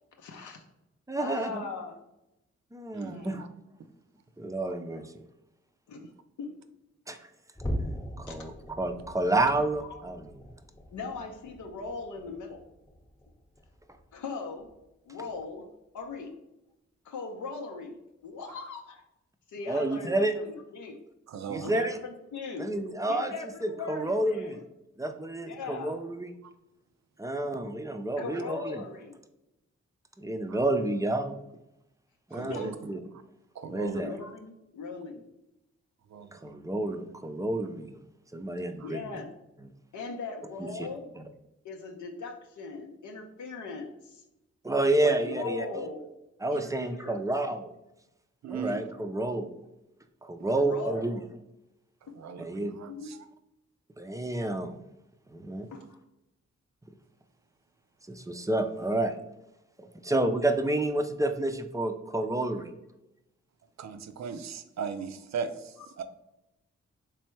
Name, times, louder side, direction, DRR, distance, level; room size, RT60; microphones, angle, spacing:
voice 1, 0.2-0.6 1.2-2.0 3.1-3.4 5.9-6.1 6.4-6.6 8.3-8.4 9.8-10.0 10.9-12.6 14.1-14.7 15.1-16.3 17.0-19.0 19.5-21.0 21.6-22.7 23.1-24.6 25.4-25.9 28.2-29.2 32.3-32.7 34.0-35.3 38.8-39.3 39.9-41.1 41.6-44.2 45.0-46.1 46.5-47.2 50.5-51.1 52.6-53.1 55.7-56.0, left 4 dB, 80° left, 2 dB, 0.6 m, -39 dB
voice 2, 1.1-1.6 2.7-3.4 4.4-5.1 7.1-7.2 8.2-10.3 19.7-20.3 21.5-22.0 22.6-23.3 23.6-24.6 25.0-26.3 27.2-28.8 30.2-31.3 32.3-33.0 33.7-34.1 36.3-37.9 38.3-39.0 44.6-45.9 46.4-47.7 48.5-49.5 50.2-51.2 52.4-52.7 54.0-54.8 55.3-55.7 58.1-59.2 59.8-62.7, right 2 dB, 10° right, 7 dB, 0.4 m, -29 dB
voice 3, 2.9-3.5 21.3-21.8 30.5-30.6 32.3-32.8 33.6-34.0 36.1-36.3 38.8-38.9 48.4-48.9 52.2-53.2 63.8-66.1, right 6 dB, 65° right, 10 dB, 0.5 m, -38 dB
sound 1, 7.5-14.2 14.6-14.9 15.3-15.4 16.0-16.1, equal, 10° left, 0.8 m, -41 dB
3.4 x 3.2 x 3.1 m, 0.90 s
cardioid pair, 50°, 29 cm